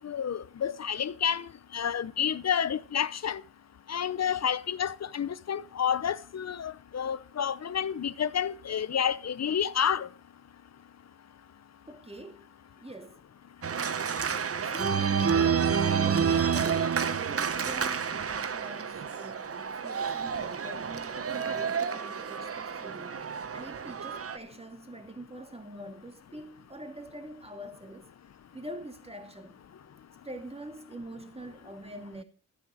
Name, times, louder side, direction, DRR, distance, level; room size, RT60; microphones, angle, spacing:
voice 1, 0.0-3.4 3.9-10.1, left 8 dB, 55° left, 0.7 m, -30 dB
voice 2, 11.9-13.3 14.6-15.1 16.0-28.1 28.5-29.5 30.2-32.2, right 1 dB, 20° right, 2.2 m, -44 dB
Organ, 13.6-24.4, right 6 dB, 45° right, 0.8 m, -29 dB
12.5 x 9.3 x 4.8 m
cardioid pair, 70°, 32 cm